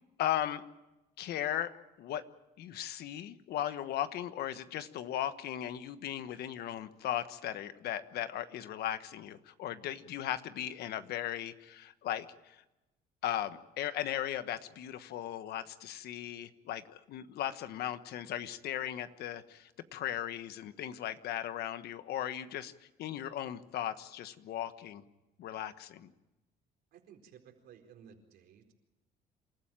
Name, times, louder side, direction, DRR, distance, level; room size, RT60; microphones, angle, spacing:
voice 1, 0.2-0.6 1.2-2.2 2.6-12.6 13.2-22.7 23.0-25.0 25.4-26.1, left 11 dB, 70° left, 12 dB, 1.3 m, -37 dB
voice 2, 26.9-28.7, right 8 dB, 70° right, 3 dB, 4.4 m, -56 dB
27.5 x 14.5 x 8.9 m, 1.0 s
cardioid pair, 110°, 17 cm